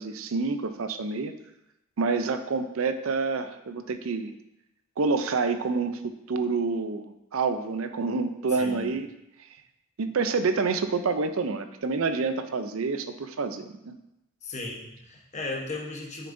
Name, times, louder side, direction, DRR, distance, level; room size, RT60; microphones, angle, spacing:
voice 1, 0.0-1.3 2.0-4.3 5.0-9.1 10.0-13.9, right 4 dB, 80° right, 9 dB, 0.5 m, -28 dB
voice 2, 8.5-8.9 14.4-16.3, left 2 dB, 35° left, 0 dB, 1.0 m, -36 dB
7.0 x 6.7 x 2.6 m, 0.88 s
head